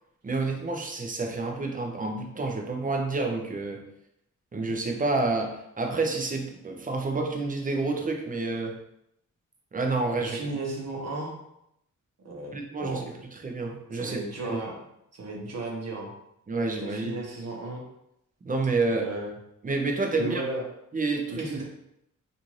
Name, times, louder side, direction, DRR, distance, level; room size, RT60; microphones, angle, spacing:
voice 1, 0.2-3.8 4.5-8.8 9.7-10.4 12.5-13.0 13.4-14.6 16.5-17.2 18.4-19.1 19.6-20.4 20.9-21.6, right 3 dB, 25° right, 3 dB, 0.5 m, -29 dB
voice 2, 10.2-11.4 12.2-13.1 13.9-14.7 15.1-16.1 16.8-17.8 18.9-19.3 20.1-20.6 21.4-21.6, right 2 dB, 50° right, -2 dB, 0.9 m, -34 dB
2.6 x 2.5 x 3.0 m, 0.79 s
cardioid pair, 75°, 32 cm